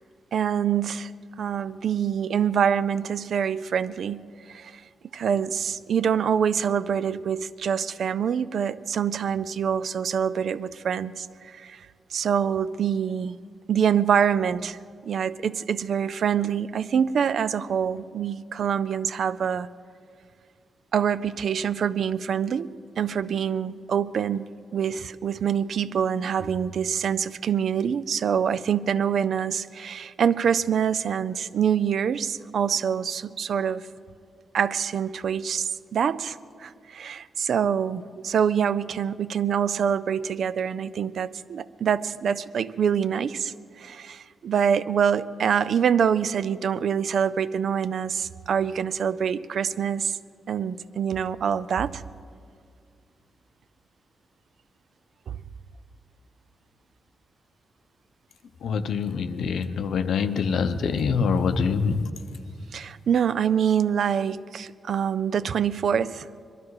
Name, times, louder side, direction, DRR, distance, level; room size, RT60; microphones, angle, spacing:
voice 1, 0.3-1.1 1.4-4.8 5.1-11.9 12.1-13.4 13.7-19.7 20.9-22.7 23.0-24.5 24.7-33.9 34.5-50.2 50.5-52.0 55.3-55.4 62.7-66.3, right 8 dB, 65° right, 16 dB, 0.4 m, -25 dB
voice 2, 58.6-62.0, left 5 dB, 80° left, 10 dB, 0.7 m, -25 dB
22.0 x 12.5 x 4.8 m, 2.2 s
wide cardioid pair, 135°, 0 cm